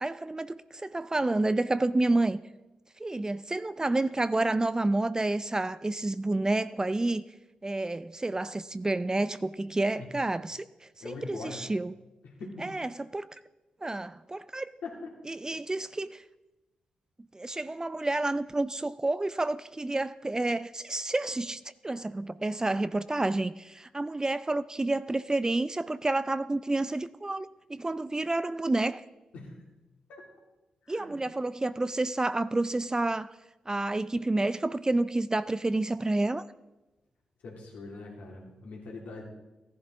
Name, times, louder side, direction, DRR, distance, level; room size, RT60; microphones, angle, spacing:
voice 1, 0.0-2.4 3.0-7.2 7.6-10.7 11.0-11.9 12.6-13.2 13.8-14.7 15.3-16.2 17.3-29.0 30.9-33.3 33.7-36.4, right 2 dB, 25° right, 0.4 m, -29 dB
voice 2, 11.0-11.6 12.2-12.7 14.8-15.0 29.3-29.6 30.1-30.2 30.9-31.2 37.4-39.2, left 3 dB, 75° left, 2.7 m, -42 dB
15.0 x 11.0 x 3.8 m
supercardioid pair, 40°, 3 cm